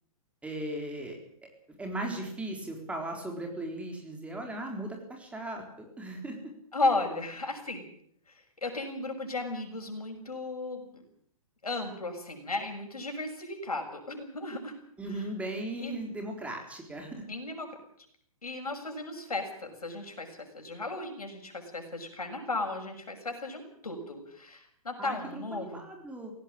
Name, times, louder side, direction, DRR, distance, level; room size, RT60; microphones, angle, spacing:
voice 1, 0.4-1.2 1.8-6.4 15.0-17.1 25.0-26.3, right 1 dB, 5° right, 3 dB, 4.0 m, -37 dB
voice 2, 6.7-7.8 8.6-11.0 11.6-14.8 15.1-15.2 15.8-16.0 17.3-17.7 18.4-25.8, left 2 dB, 80° left, 4 dB, 6.7 m, -35 dB
18.0 x 17.5 x 8.7 m, 0.66 s
figure-of-eight pair, 125°, 19 cm